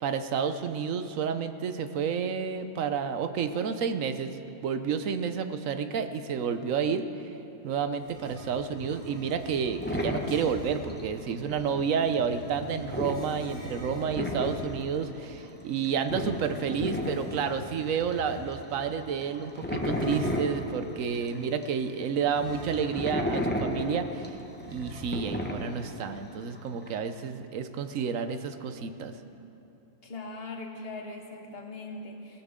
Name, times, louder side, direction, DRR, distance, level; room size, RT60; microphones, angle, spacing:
voice 1, 0.0-4.4 4.6-7.1 7.6-24.3 24.7-29.1, right 6 dB, 85° right, 9 dB, 1.2 m, -30 dB
sound 1, 7.9-10.9 11.7-14.9 16.1-18.7 19.8-20.6 22.3-23.2 23.5-23.6 24.6-25.4, equal, 65° right, 4.5 m, -45 dB
sound 2, 8.8-21.7 22.2-27.0, left 1 dB, 10° left, 1.2 m, -34 dB
voice 2, 30.0-32.4, left 2 dB, 50° left, 2 dB, 1.6 m, -40 dB
21.0 x 16.0 x 3.7 m, 3.0 s
omnidirectional pair, 1.3 m